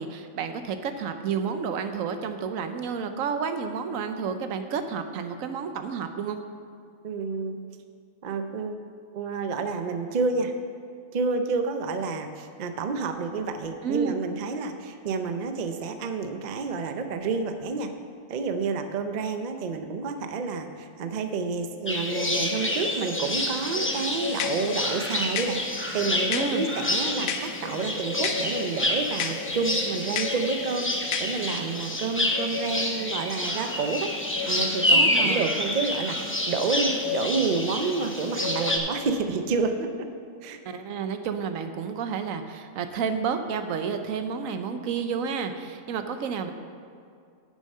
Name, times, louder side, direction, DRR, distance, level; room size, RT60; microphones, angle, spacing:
voice 1, 0.0-6.4 13.8-14.2 26.3-26.6 34.9-35.5 40.7-46.5, right 6 dB, 80° right, 8 dB, 1.1 m, -30 dB
voice 2, 7.0-7.6 8.2-8.8 9.1-10.5 11.1-17.9 18.3-34.1 34.5-39.9 40.4-40.6, right 4 dB, 45° right, 7 dB, 0.6 m, -29 dB
sound 1, 21.9-38.8, left 1 dB, 15° left, 0.5 m, -28 dB
sound 2, 23.9-31.6, left 7 dB, 80° left, 1.0 m, -36 dB
9.9 x 6.4 x 5.4 m, 2.3 s
omnidirectional pair, 1.4 m